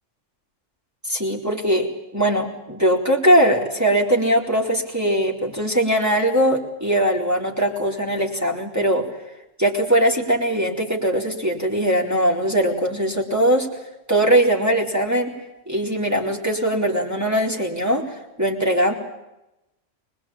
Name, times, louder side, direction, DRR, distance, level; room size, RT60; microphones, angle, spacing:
voice 1, 1.1-9.0 9.6-13.7 14.1-15.3 15.7-18.0 18.4-18.9, right 1 dB, 15° right, -1 dB, 4.2 m, -20 dB
24.5 x 21.0 x 8.8 m, 0.93 s
omnidirectional pair, 1.3 m